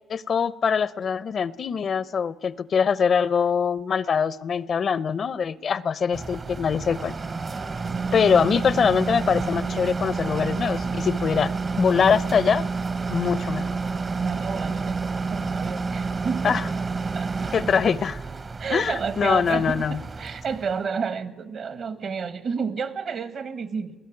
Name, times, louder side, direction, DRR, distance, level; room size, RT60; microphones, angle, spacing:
voice 1, 0.1-7.1 8.1-11.5 11.8-12.6 13.1-13.7 16.4-16.6 17.5-18.2 18.7-20.0, left 6 dB, 50° left, 19 dB, 0.6 m, -23 dB
sound 1, 6.1-20.8, right 4 dB, 35° right, 0.9 m, -29 dB
voice 2, 7.9-8.5 14.2-16.5 17.1-17.6 18.6-19.8 20.2-23.9, right 6 dB, 60° right, 13 dB, 1.5 m, -31 dB
21.0 x 16.5 x 9.8 m, 1.2 s
cardioid pair, 90°, 0 cm